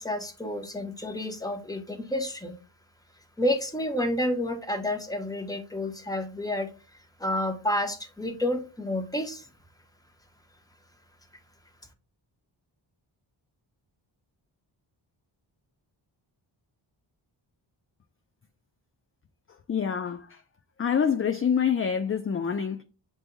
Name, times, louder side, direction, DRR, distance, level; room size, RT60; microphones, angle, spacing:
voice 1, 0.0-2.5 3.4-6.7 7.2-9.5, left 1 dB, 5° left, 1.0 m, -30 dB
voice 2, 19.7-20.3 20.8-22.8, left 7 dB, 30° left, 0.4 m, -26 dB
7.8 x 2.7 x 2.2 m
cardioid pair, 55°, 49 cm